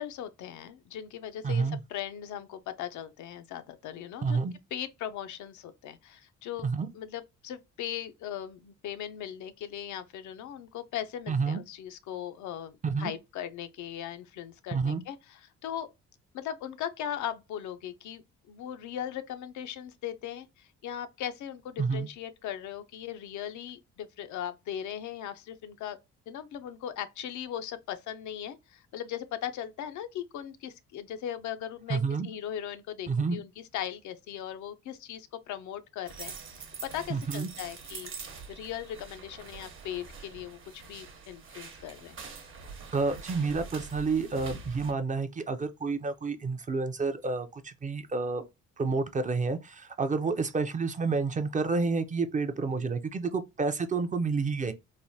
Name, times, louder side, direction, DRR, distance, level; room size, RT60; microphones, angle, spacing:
voice 1, 0.0-4.4 4.7-6.7 6.9-15.9 16.3-26.0 26.3-36.6 36.9-38.1 38.5-42.2, left 10 dB, 75° left, 0.5 m, -39 dB
voice 2, 1.4-1.8 4.2-4.6 6.6-6.9 11.3-11.6 12.8-13.1 14.7-15.0 21.8-22.1 31.9-32.3 33.1-33.4 37.1-37.5 42.9-48.4 48.8-54.7, right 4 dB, 25° right, 0.4 m, -29 dB
sound 1, 36.0-44.9, right 5 dB, 40° right, 0.8 m, -45 dB
3.2 x 2.1 x 2.6 m
cardioid pair, 90°, 30 cm